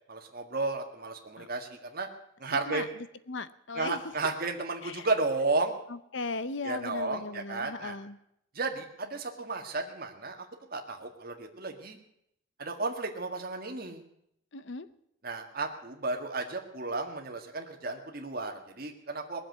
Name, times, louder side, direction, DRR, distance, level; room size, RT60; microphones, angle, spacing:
voice 1, 0.1-2.1 2.4-2.9 3.8-5.7 6.6-8.0 8.6-12.0 12.6-14.0 15.2-19.5, right 3 dB, 45° right, 3 dB, 1.8 m, -33 dB
voice 2, 3.3-4.0 4.8-5.1 5.9-8.2 14.5-14.9, left 3 dB, 60° left, 14 dB, 0.7 m, -37 dB
19.5 x 7.7 x 9.3 m, 0.76 s
head